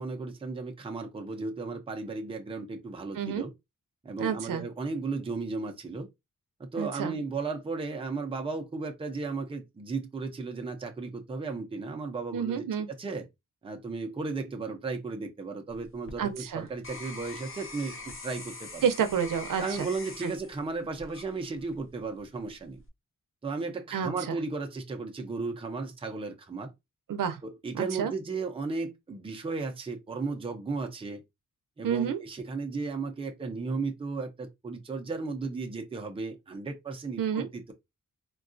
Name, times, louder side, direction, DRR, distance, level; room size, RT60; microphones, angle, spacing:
voice 1, 0.0-3.5 4.0-6.1 6.6-12.7 13.0-13.3 13.6-18.9 19.6-22.8 23.4-26.7 27.4-31.2 31.8-37.7, right 4 dB, 15° right, 0.5 m, -35 dB
voice 2, 4.2-4.6 6.8-7.2 12.3-12.9 16.2-16.6 18.8-19.9 20.2-20.3 23.9-24.4 27.1-27.4 27.7-28.1 31.8-32.2 37.2-37.5, right 7 dB, 80° right, 0.6 m, -29 dB
sound 1, 15.7-21.9 22.4-22.9, left 3 dB, 40° left, 0.7 m, -44 dB
3.6 x 2.3 x 2.5 m
wide cardioid pair, 145°, 32 cm